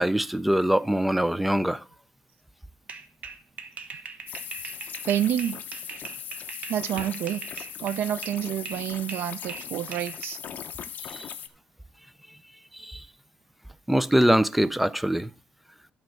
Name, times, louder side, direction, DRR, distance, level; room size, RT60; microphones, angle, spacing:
voice 1, 0.0-1.8 11.1-11.3 12.7-13.0 13.9-15.3, right 1 dB, 5° right, 0.4 m, -23 dB
sound 1, 2.9-8.4 8.7-10.3, right 5 dB, 45° right, 1.1 m, -40 dB
sound 2, 4.3-11.5, left 9 dB, 50° left, 0.8 m, -39 dB
voice 2, 5.0-5.6 6.7-10.4, right 11 dB, 80° right, 0.5 m, -29 dB
12.0 x 4.3 x 6.1 m
cardioid pair, 140°, 4 cm